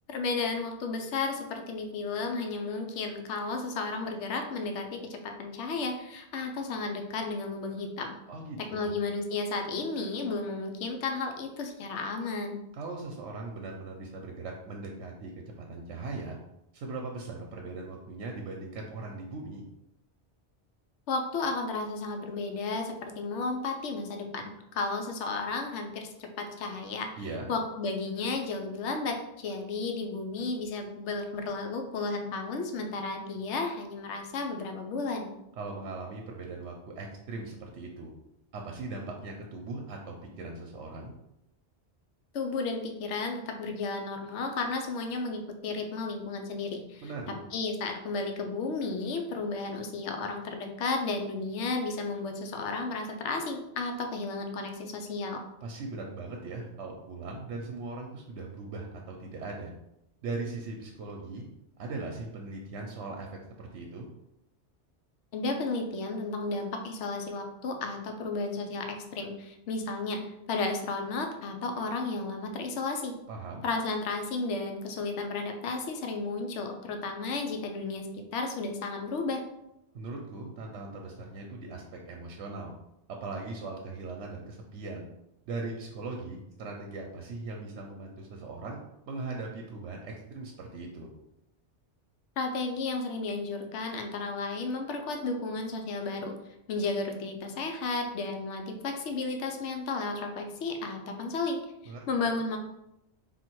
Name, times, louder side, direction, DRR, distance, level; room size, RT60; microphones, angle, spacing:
voice 1, 0.1-8.2 8.7-12.6 21.1-27.1 27.5-35.3 42.3-47.1 47.5-55.4 65.3-73.1 73.6-79.4 92.4-96.3 96.7-102.6, left 3 dB, 85° left, 4 dB, 0.9 m, -33 dB
voice 2, 8.3-8.9 12.7-15.3 15.6-16.4 16.7-19.6 27.2-27.5 35.6-38.1 38.5-41.1 47.0-47.4 55.6-59.7 60.2-61.4 61.8-63.3 63.6-64.1 73.3-73.6 79.9-82.7 83.2-85.0 85.5-88.8 89.1-91.1 101.9-102.3, right 3 dB, 90° right, 1 dB, 0.9 m, -39 dB
3.5 x 2.5 x 4.4 m, 0.84 s
omnidirectional pair, 1.2 m